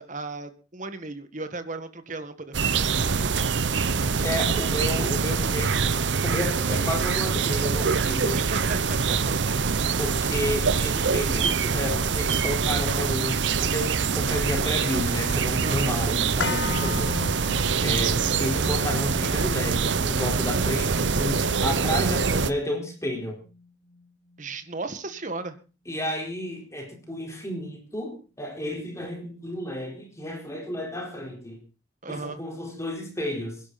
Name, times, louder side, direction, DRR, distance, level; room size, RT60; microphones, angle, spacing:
voice 1, 0.0-3.2 8.3-9.2 15.6-16.0 24.4-25.6 32.0-32.4, right 3 dB, 45° right, 9 dB, 1.7 m, -35 dB
sound 1, 2.5-22.5, right 5 dB, 85° right, 0.8 m, -24 dB
voice 2, 4.2-5.9 6.2-8.4 10.0-17.4 17.8-23.4 25.9-31.6 32.1-33.6, left 1 dB, 15° left, 1 dB, 4.4 m, -31 dB
sound 2, 16.4-24.5 24.8-24.9, left 4 dB, 80° left, 1.2 m, -37 dB
22.5 x 11.5 x 4.2 m, 0.34 s
head